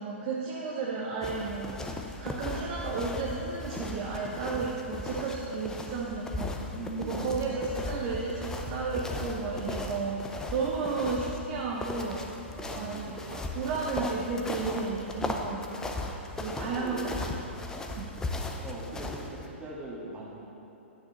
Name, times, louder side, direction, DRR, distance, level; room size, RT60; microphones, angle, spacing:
voice 1, 0.0-6.5 7.0-12.3 12.8-15.7 16.4-17.3 17.9-18.2, right 4 dB, 35° right, -2 dB, 0.8 m, -33 dB
sound 1, 1.2-19.5, left 2 dB, 10° left, 0.5 m, -37 dB
voice 2, 6.6-7.4 12.5-13.4 15.9-16.2 16.5-17.1 18.5-20.3, right 2 dB, 20° right, -5 dB, 1.8 m, -41 dB
9.6 x 8.6 x 3.0 m, 2.9 s
figure-of-eight pair, 110°, 7 cm